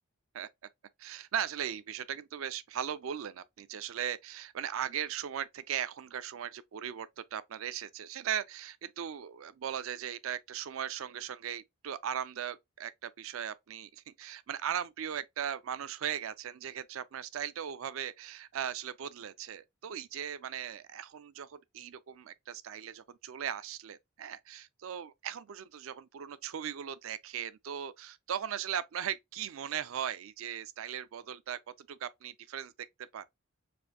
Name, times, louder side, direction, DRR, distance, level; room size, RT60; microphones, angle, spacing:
voice 1, 1.0-32.7 33.0-33.3, right 9 dB, 75° right, 0.4 m, -38 dB
4.2 x 2.5 x 2.7 m
head